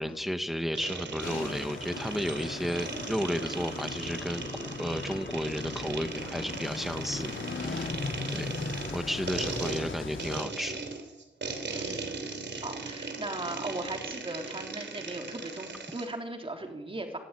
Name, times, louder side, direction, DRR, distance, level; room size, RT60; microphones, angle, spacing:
voice 1, 0.0-8.0 8.3-10.8, equal, ahead, 8 dB, 1.2 m, -33 dB
sound 1, 0.7-16.1, right 4 dB, 65° right, 3.4 m, -38 dB
sound 2, 1.2-10.4, left 3 dB, 70° left, 4.7 m, -38 dB
voice 2, 8.2-8.7 11.7-12.2 12.5-17.2, right 2 dB, 25° right, 3 dB, 3.5 m, -38 dB
25.0 x 17.0 x 9.9 m, 1.1 s
wide cardioid pair, 160°, 20 cm